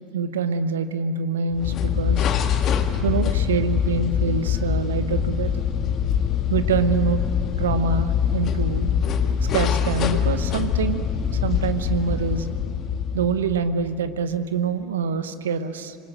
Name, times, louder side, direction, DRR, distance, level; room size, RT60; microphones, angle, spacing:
voice 1, 0.1-2.3 3.0-5.5 6.5-7.2 7.6-8.9 9.5-11.1 11.4-12.5 13.1-16.0, right 5 dB, 80° right, 12 dB, 1.0 m, -25 dB
sound 1, 1.5-13.7, left 8 dB, 45° left, 1.7 m, -24 dB
26.5 x 21.0 x 7.8 m, 2.7 s
hypercardioid pair, 75°, 0 cm